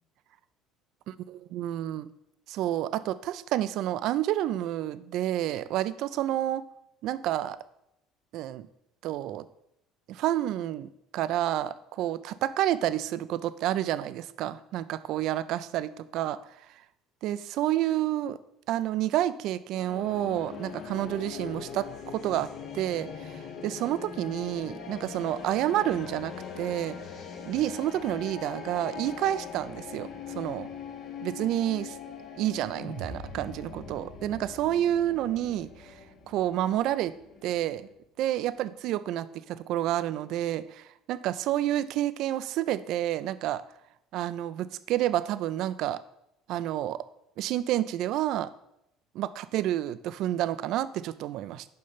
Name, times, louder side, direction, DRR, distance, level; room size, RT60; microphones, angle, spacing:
voice 1, 1.3-2.1 2.5-6.6 7.0-7.6 8.3-8.7 9.0-9.5 10.1-16.4 17.2-18.4 18.7-22.5 22.7-23.3 23.6-27.0 27.5-30.1 30.3-30.7 31.2-32.0 32.4-35.9 36.3-37.1 37.4-37.9 38.2-43.6 44.1-46.0 46.5-47.0 47.4-48.5 49.1-51.6, right 12 dB, 60° right, 14 dB, 0.4 m, -29 dB
sound 1, 19.7-37.9, left 6 dB, 55° left, 1.0 m, -42 dB
sound 2, 32.7-37.1, right 2 dB, 90° left, 3.2 m, -45 dB
5.5 x 5.4 x 5.6 m, 0.80 s
hypercardioid pair, 60°, 0 cm